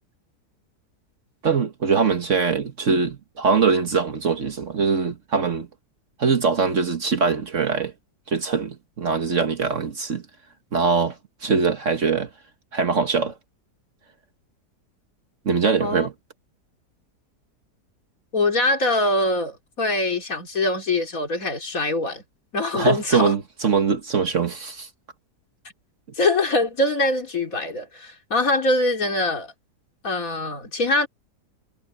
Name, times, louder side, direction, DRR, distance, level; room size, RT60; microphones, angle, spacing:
voice 1, 1.4-5.7 6.2-7.9 8.3-10.2 10.7-12.3 12.7-13.4 15.4-16.1 22.7-24.9, right 5 dB, 50° right, 1.6 m, -22 dB
voice 2, 18.3-22.2 22.5-23.3 26.2-29.5 30.0-31.1, left 2 dB, 55° left, 3.3 m, -23 dB
omnidirectional pair, 1.8 m